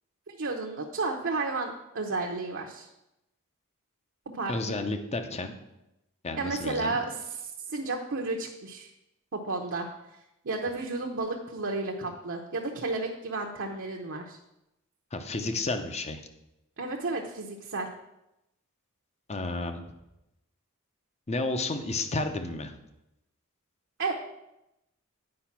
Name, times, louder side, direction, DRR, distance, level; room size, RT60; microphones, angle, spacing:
voice 1, 0.3-2.9 4.3-4.8 6.4-8.9 9.3-9.9 10.4-14.4 16.8-17.9 24.0-24.1, right 3 dB, 60° right, 1 dB, 0.8 m, -32 dB
voice 2, 4.5-5.6 6.2-7.0 15.1-16.2 19.3-19.8 21.3-22.7, left 2 dB, 30° left, 7 dB, 0.7 m, -31 dB
8.6 x 5.1 x 5.9 m, 0.89 s
head